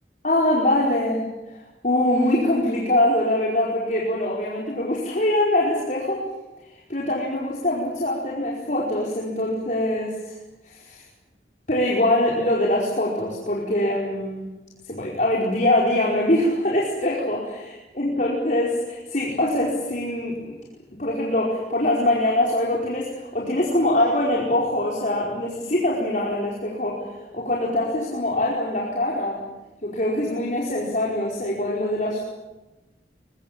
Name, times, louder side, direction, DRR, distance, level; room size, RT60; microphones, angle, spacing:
voice 1, 0.2-1.2 1.5-6.2 6.9-10.4 10.6-11.0 11.7-14.5 14.9-20.6 21.0-27.0 27.3-29.4 29.8-32.2, left 1 dB, 45° left, -3 dB, 4.9 m, -23 dB
24.0 x 22.0 x 8.8 m, 1.0 s
head